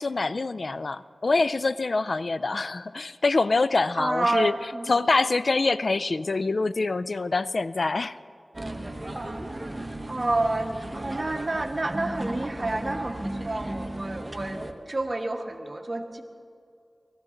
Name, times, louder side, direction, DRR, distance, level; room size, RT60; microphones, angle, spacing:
voice 1, 0.0-4.5 4.9-8.2, left 3 dB, 65° left, 16 dB, 0.3 m, -25 dB
voice 2, 4.0-4.9 9.8-16.2, right 2 dB, 45° right, 5 dB, 1.2 m, -29 dB
sound 1, 8.5-14.7, right 1 dB, 30° right, 1.1 m, -35 dB
19.0 x 14.0 x 3.8 m, 2.4 s
cardioid pair, 40°, 0 cm